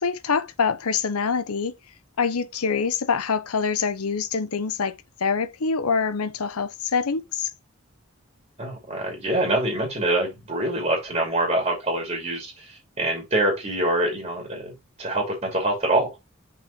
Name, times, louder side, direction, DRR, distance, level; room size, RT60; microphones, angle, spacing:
voice 1, 0.0-1.7 2.2-4.9 5.2-7.5, left 5 dB, 90° left, 0.8 m, -25 dB
voice 2, 8.6-14.7 15.0-16.2, right 1 dB, 30° right, 2.6 m, -25 dB
6.4 x 4.4 x 3.9 m
head